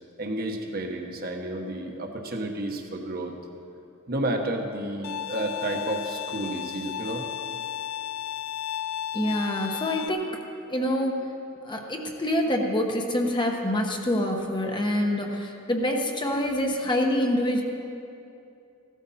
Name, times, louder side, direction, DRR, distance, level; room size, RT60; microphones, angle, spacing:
voice 1, 0.2-3.3 4.1-7.3, right 1 dB, 45° right, 3 dB, 1.1 m, -31 dB
Bowed string instrument, 5.0-10.1, left 10 dB, 85° left, 0.3 m, -34 dB
voice 2, 9.1-10.3 10.7-11.2 11.6-17.6, left 1 dB, 20° left, 1 dB, 1.1 m, -26 dB
16.0 x 13.0 x 4.2 m, 2.7 s
head